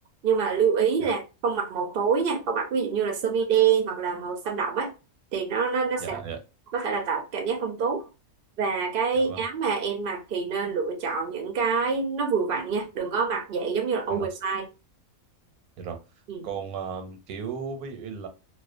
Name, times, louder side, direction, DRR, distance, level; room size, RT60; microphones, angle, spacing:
voice 1, 0.2-4.9 5.3-6.2 6.7-8.1 8.6-14.7 16.3-16.5, right 6 dB, 70° right, 0.5 m, -26 dB
voice 2, 6.0-6.4 9.1-9.4 14.1-14.3 15.8-16.0 16.4-18.3, right 6 dB, 90° right, 1.1 m, -35 dB
2.5 x 2.1 x 2.4 m
omnidirectional pair, 1.5 m